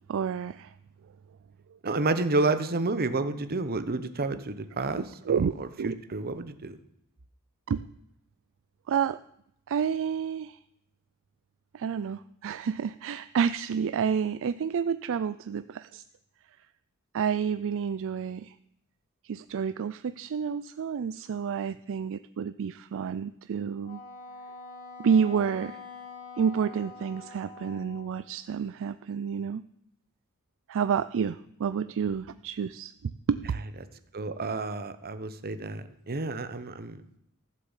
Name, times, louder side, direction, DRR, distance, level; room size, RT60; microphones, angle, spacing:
voice 1, 0.1-0.7 5.3-5.5 5.8-5.9 7.7-7.9 8.9-9.2 9.7-10.6 11.7-16.0 17.1-18.5 19.2-24.0 25.0-25.8 26.4-29.7 30.7-33.5, right 7 dB, 60° right, 13 dB, 0.4 m, -29 dB
voice 2, 1.8-6.8 34.1-37.0, right 3 dB, 45° right, 11 dB, 1.0 m, -30 dB
Wind instrument woodwind instrument, 23.8-28.3, left 4 dB, 40° left, 2.4 m, -45 dB
15.0 x 7.7 x 7.2 m, 0.77 s
head